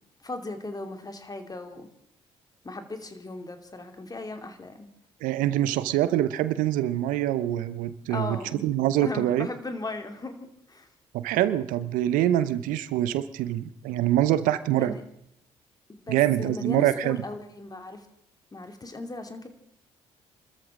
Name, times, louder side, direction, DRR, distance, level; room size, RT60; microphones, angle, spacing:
voice 1, 0.2-1.9 2.6-4.9 8.1-8.6 9.0-10.4 10.7-10.9 14.8-15.0 16.1-18.1 18.5-19.5, left 2 dB, 25° left, 6 dB, 2.7 m, -37 dB
voice 2, 5.2-9.5 11.1-15.0 16.1-17.2, right 13 dB, 75° right, 14 dB, 0.8 m, -25 dB
27.5 x 13.5 x 3.8 m, 0.71 s
hypercardioid pair, 45°, 14 cm